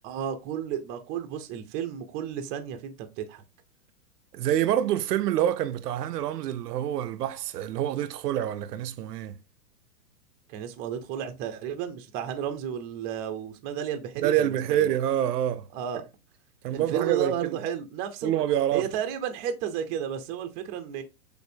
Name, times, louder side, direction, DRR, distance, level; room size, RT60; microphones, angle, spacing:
voice 1, 0.0-3.4 10.5-14.9 15.7-16.0 16.7-18.3 18.7-21.0, right 8 dB, 20° right, 0.5 m, -32 dB
voice 2, 4.3-9.4 14.2-15.7 16.6-17.6 18.2-18.9, right 11 dB, 80° right, 0.6 m, -26 dB
6.4 x 2.6 x 2.5 m
hypercardioid pair, 125°, 47 cm